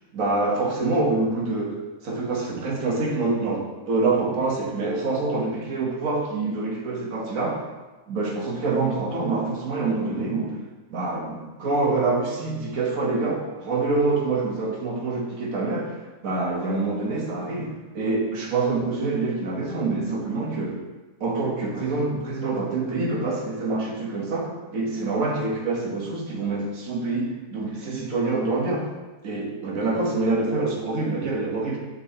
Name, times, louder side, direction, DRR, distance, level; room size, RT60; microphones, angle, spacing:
voice 1, 0.1-1.8 2.0-7.6 8.1-10.6 10.9-16.0 16.2-20.8 21.2-28.9 29.2-31.8, right 3 dB, 75° right, -1 dB, 1.6 m, -26 dB
6.7 x 6.6 x 2.9 m, 1.2 s
omnidirectional pair, 1.4 m